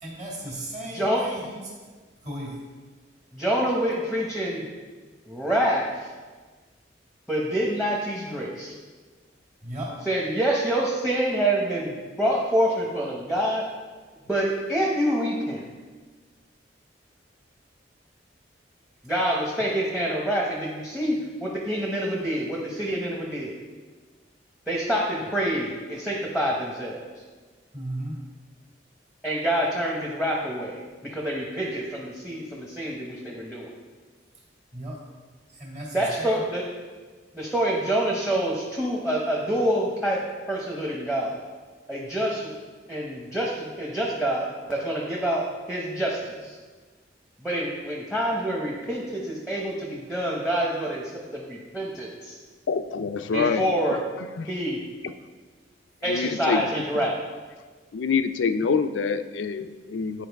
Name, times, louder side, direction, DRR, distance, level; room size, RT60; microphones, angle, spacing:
voice 1, 0.0-1.7 2.2-2.6 4.0-4.1 9.6-10.0 27.7-28.2 34.7-35.0 35.5-36.4, right 1 dB, 40° right, -4 dB, 1.8 m, -36 dB
voice 2, 0.9-1.2 3.3-4.6 5.3-6.1 7.3-8.7 10.1-13.6 14.2-15.6 19.0-23.5 24.7-27.0 29.2-33.7 35.9-36.6 37.3-40.2 40.5-41.4 41.9-42.5 42.9-46.5 47.4-52.4 53.3-54.0 54.5-54.8 56.0-57.2, right 1 dB, 5° right, -2 dB, 0.8 m, -26 dB
voice 3, 52.7-53.6 54.4-54.5 56.1-56.6 57.9-60.3, left 5 dB, 85° left, 10 dB, 0.4 m, -26 dB
10.0 x 4.6 x 3.4 m, 1.4 s
head